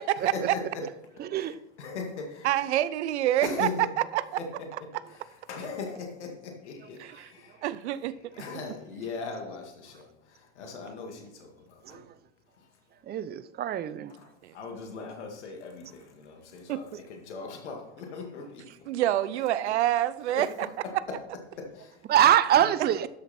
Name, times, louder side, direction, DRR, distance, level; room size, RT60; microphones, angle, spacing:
voice 1, 0.2-0.8 1.3-2.7 3.4-3.9 4.4-12.1 12.5-13.2 14.1-18.9 19.3-19.4 20.3-20.5 20.8-21.2 21.5-22.1 22.5-22.7, left 4 dB, 85° left, 2.1 m, -40 dB
voice 2, 2.4-3.7 4.1-4.2 7.0-7.3 7.6-8.2 13.9-14.1 14.4-14.5 16.7-17.0 18.9-20.5 22.4-23.1, right 13 dB, 80° right, 0.7 m, -27 dB
voice 3, 13.1-14.1 22.1-23.1, right 11 dB, 30° right, 0.6 m, -23 dB
12.0 x 6.7 x 4.3 m
hypercardioid pair, 105°, 34 cm